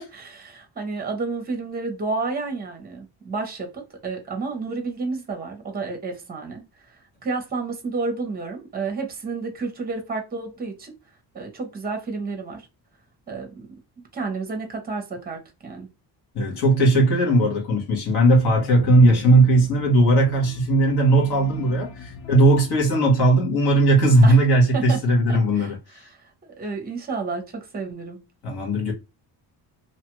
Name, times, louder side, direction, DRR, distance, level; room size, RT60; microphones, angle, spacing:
voice 1, 0.0-6.6 7.2-10.9 11.3-12.6 13.3-13.7 14.1-15.9 24.2-24.4 24.7-25.0 25.3-25.7 26.1-28.2, right 4 dB, 20° right, 0.7 m, -31 dB
voice 2, 16.3-26.1 28.4-28.9, right 1 dB, 65° left, 1.3 m, -18 dB
sound 1, 18.3-22.9, left 5 dB, 80° left, 0.7 m, -40 dB
2.8 x 2.4 x 3.0 m
wide cardioid pair, 175°, 43 cm